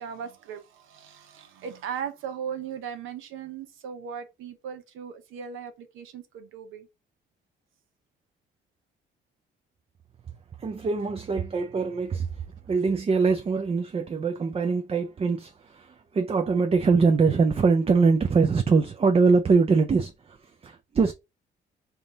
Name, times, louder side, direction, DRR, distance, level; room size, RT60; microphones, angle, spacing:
voice 1, 0.0-6.9, right 7 dB, 85° right, 0.8 m, -38 dB
voice 2, 10.6-21.1, right 4 dB, 30° right, 0.5 m, -23 dB
3.6 x 2.9 x 3.7 m
cardioid pair, 90°, 20 cm